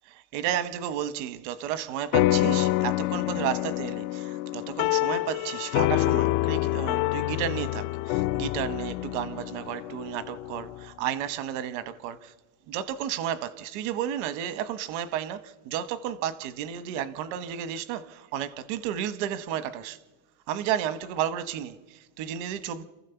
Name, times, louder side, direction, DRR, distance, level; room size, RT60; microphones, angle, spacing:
voice 1, 0.1-12.3 12.7-20.0 20.5-22.8, right 10 dB, 65° right, 1.2 m, -32 dB
sound 1, 2.1-10.8, left 17 dB, 90° left, 0.6 m, -27 dB
27.5 x 15.0 x 7.0 m
cardioid pair, 160°, 42 cm